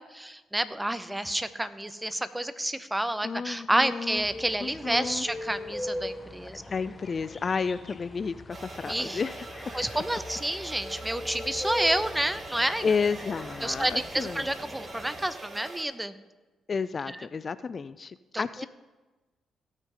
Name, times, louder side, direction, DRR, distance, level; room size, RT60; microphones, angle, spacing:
voice 1, 0.0-6.6 8.8-9.2 9.7-12.9 13.6-16.1 17.1-17.2 18.3-18.4, right 1 dB, 10° right, 13 dB, 0.7 m, -29 dB
voice 2, 3.2-4.2 4.6-5.2 6.7-10.0 12.8-14.5 16.7-18.7, left 5 dB, 45° left, 15 dB, 0.3 m, -31 dB
sound 1, 4.2-15.3, left 1 dB, 25° left, 1.1 m, -41 dB
sound 2, 8.5-15.8, right 3 dB, 45° right, 1.6 m, -43 dB
17.5 x 6.3 x 3.8 m, 1.2 s
supercardioid pair, 60°, 0 cm